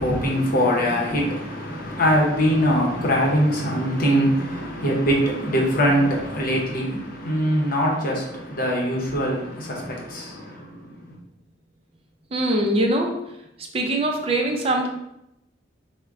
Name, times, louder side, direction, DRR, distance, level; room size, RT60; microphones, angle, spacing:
voice 1, 0.0-11.2, equal, 50° left, 0.8 m, -22 dB
voice 2, 12.3-13.2 13.7-14.9, right 1 dB, 30° right, 0.5 m, -22 dB
3.5 x 2.1 x 3.6 m
head